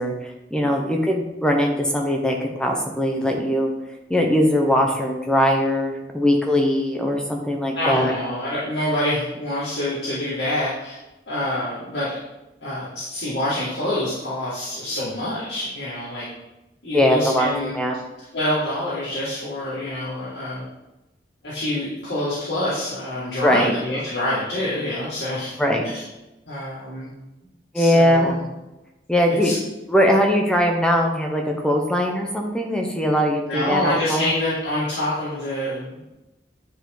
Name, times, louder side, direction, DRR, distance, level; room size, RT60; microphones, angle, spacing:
voice 1, 0.0-3.7 4.1-8.1 16.9-18.0 23.4-23.8 25.6-25.8 27.7-28.4 29.1-29.6 29.9-34.3, equal, 5° left, 1 dB, 0.9 m, -20 dB
voice 2, 7.7-11.0 11.3-12.2 12.6-16.3 16.8-17.8 18.3-20.6 21.4-25.6 25.8-26.0 26.5-27.1 27.7-28.5 29.3-29.5 33.5-36.1, left 1 dB, 85° left, -10 dB, 2.3 m, -26 dB
9.8 x 4.7 x 3.9 m, 0.98 s
head